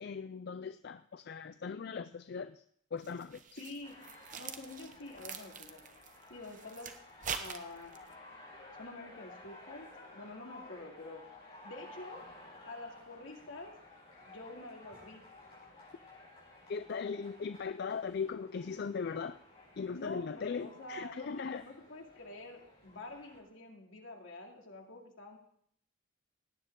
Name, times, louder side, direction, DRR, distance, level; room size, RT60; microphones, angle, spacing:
voice 1, 0.0-2.6 2.9-3.4 16.7-19.4 19.8-21.6, left 5 dB, 55° left, 12 dB, 0.4 m, -39 dB
sound 1, 3.0-8.1, right 6 dB, 40° right, 0.9 m, -44 dB
voice 2, 3.6-3.9 4.4-5.8 6.3-6.9 7.4-7.9 8.8-11.2 11.6-12.2 12.6-13.7 14.3-15.2 19.9-25.4, left 2 dB, 75° left, 0 dB, 2.6 m, -47 dB
sound 2, 3.8-23.4, left 2 dB, 30° left, 6.5 m, -55 dB
17.5 x 9.8 x 3.7 m, 0.66 s
head